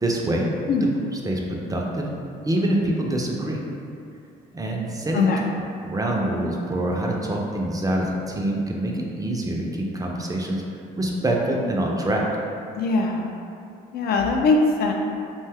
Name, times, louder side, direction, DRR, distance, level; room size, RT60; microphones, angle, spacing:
voice 1, 0.0-0.5 0.8-2.1 2.5-3.6 4.5-5.3 5.8-10.6 11.0-12.3, right 1 dB, 20° right, -1 dB, 0.4 m, -25 dB
voice 2, 12.8-13.3 13.9-14.9, left 3 dB, 55° left, 1 dB, 0.4 m, -21 dB
2.6 x 2.2 x 3.4 m, 2.5 s
supercardioid pair, 65°, 19 cm